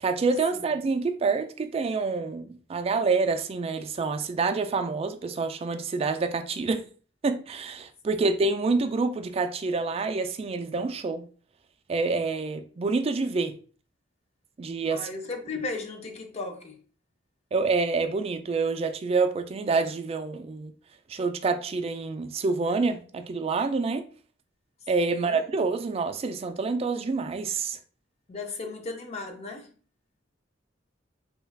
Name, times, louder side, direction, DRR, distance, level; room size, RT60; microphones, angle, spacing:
voice 1, 0.0-6.9 7.2-11.3 11.9-13.6 14.6-15.1 17.5-20.7 21.1-24.1 24.9-27.8, right 4 dB, 30° right, 0.3 m, -27 dB
voice 2, 14.9-16.8 25.1-25.4 28.3-29.7, left 3 dB, 35° left, 0.5 m, -36 dB
3.2 x 2.3 x 3.2 m
head